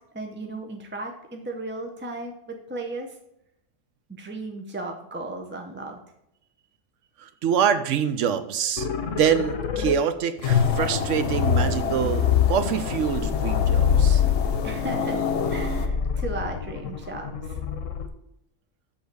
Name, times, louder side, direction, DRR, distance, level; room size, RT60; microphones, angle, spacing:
voice 1, 0.1-3.1 4.1-6.0 14.6-17.6, right 2 dB, 15° right, 2 dB, 0.4 m, -35 dB
voice 2, 7.2-14.2, right 8 dB, 75° right, 10 dB, 1.0 m, -25 dB
sound 1, 8.8-9.9 10.4-18.1, left 8 dB, 85° left, 1.2 m, -25 dB
sound 2, 10.4-15.9, left 5 dB, 65° left, 1.0 m, -29 dB
7.8 x 3.5 x 6.5 m, 0.80 s
omnidirectional pair, 1.3 m